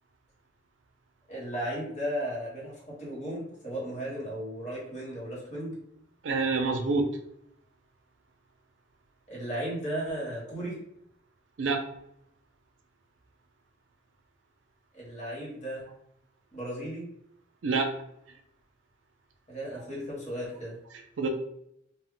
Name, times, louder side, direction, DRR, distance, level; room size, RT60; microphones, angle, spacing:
voice 1, 1.3-5.8 9.3-10.8 14.9-15.9 16.5-17.1 19.5-20.8, equal, 35° left, -5 dB, 1.1 m, -35 dB
voice 2, 6.2-7.1 11.6-11.8 17.6-17.9 21.2-21.3, right 4 dB, 80° right, 5 dB, 0.4 m, -26 dB
2.1 x 2.1 x 3.7 m, 0.75 s
head